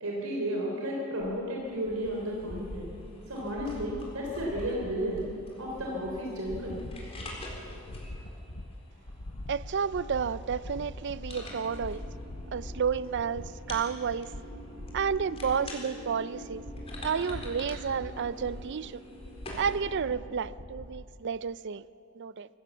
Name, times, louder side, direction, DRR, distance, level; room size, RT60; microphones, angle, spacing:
voice 1, 0.0-2.9 3.3-5.2 5.6-6.8, equal, 85° right, -2 dB, 3.4 m, -33 dB
sound 1, 1.2-21.0, left 1 dB, 65° left, 1.1 m, -44 dB
sound 2, 1.6-19.7, left 1 dB, 30° left, 4.2 m, -48 dB
voice 2, 9.5-12.0 12.5-14.3 14.9-16.6 17.0-19.0 19.6-21.9 22.2-22.5, right 6 dB, 55° right, 18 dB, 0.5 m, -31 dB
sound 3, 11.3-20.3, equal, 20° right, 6.3 m, -48 dB
25.5 x 15.5 x 7.2 m, 2.7 s
head